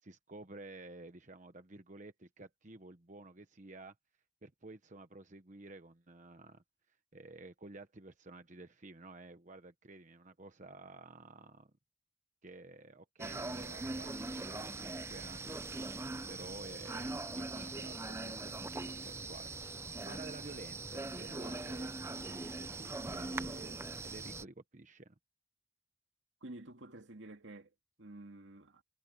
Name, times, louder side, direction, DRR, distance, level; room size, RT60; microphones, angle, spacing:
voice 1, 0.0-3.9 4.4-6.6 7.1-11.7 12.4-25.1, right 2 dB, 40° right, 1.1 m, -52 dB
sound 1, 13.2-24.4, right 2 dB, 15° right, 0.5 m, -41 dB
voice 2, 26.4-28.8, right 2 dB, 75° right, 2.2 m, -50 dB
head